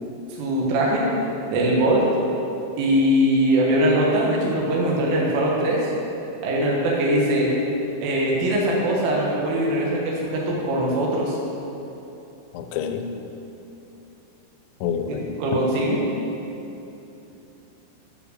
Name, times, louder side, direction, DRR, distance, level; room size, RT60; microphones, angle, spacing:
voice 1, 0.4-1.1 1.5-2.1 2.8-5.8 6.4-7.5 8.0-11.4 15.1-16.0, right 1 dB, 85° right, -4 dB, 4.1 m, -21 dB
voice 2, 12.5-13.0 14.8-15.4, left 7 dB, 80° left, 6 dB, 2.6 m, -28 dB
13.5 x 5.6 x 6.5 m, 2.9 s
omnidirectional pair, 5.5 m